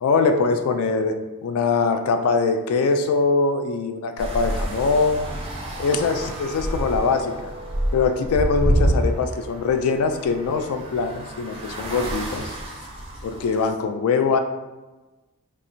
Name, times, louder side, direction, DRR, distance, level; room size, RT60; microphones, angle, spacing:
voice 1, 0.0-5.3 5.8-7.5 7.9-12.5 13.2-14.4, left 4 dB, 70° left, 8 dB, 0.3 m, -22 dB
sound 1, 4.2-13.7, right 1 dB, 25° right, 0.5 m, -28 dB
sound 2, 5.6-10.7, right 1 dB, 15° left, 1.1 m, -43 dB
2.7 x 2.5 x 4.2 m, 1.1 s
head